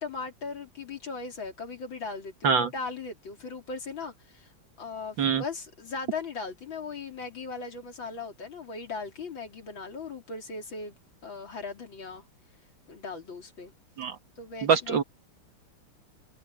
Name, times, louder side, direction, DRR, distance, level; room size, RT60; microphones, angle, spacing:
voice 1, 0.0-4.5 4.8-11.0 11.2-12.3 12.9-13.7 14.4-15.0, left 4 dB, 60° left, 4.1 m, -38 dB
voice 2, 14.6-15.0, right 6 dB, 60° right, 2.2 m, -24 dB
omnidirectional pair, 2.4 m